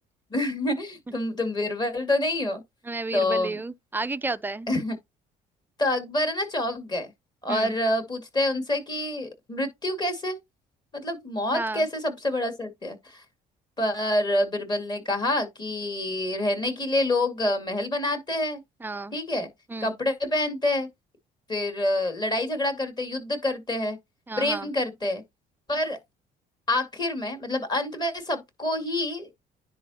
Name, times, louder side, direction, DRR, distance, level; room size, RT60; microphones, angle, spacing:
voice 1, 0.3-2.6 3.1-3.6 4.7-5.0 5.8-7.1 7.4-10.4 10.9-13.2 13.8-18.6 19.1-19.5 19.8-20.9 21.5-24.0 24.4-25.2 25.7-26.0 26.7-29.3, left 1 dB, 25° left, 2.4 m, -27 dB
voice 2, 2.8-4.7 7.5-7.8 11.5-11.9 18.8-19.2 19.7-20.0 24.3-24.7, right 3 dB, 10° right, 0.4 m, -32 dB
10.0 x 4.0 x 2.9 m
cardioid pair, 110°, 17 cm